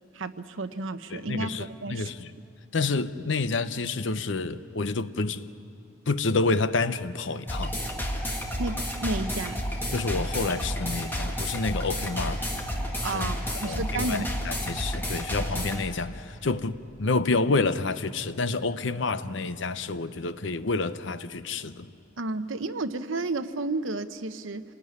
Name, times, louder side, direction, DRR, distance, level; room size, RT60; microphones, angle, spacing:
voice 1, 0.1-1.5 1.8-2.1 8.6-9.6 13.0-14.3 22.2-24.6, right 2 dB, 75° right, 1.0 m, -32 dB
voice 2, 1.1-2.3 2.7-5.5 6.1-7.8 9.9-12.5 13.0-21.9, left 3 dB, 60° left, 0.8 m, -29 dB
sound 1, 7.5-15.8, equal, 10° left, 2.1 m, -31 dB
27.0 x 19.0 x 9.7 m
head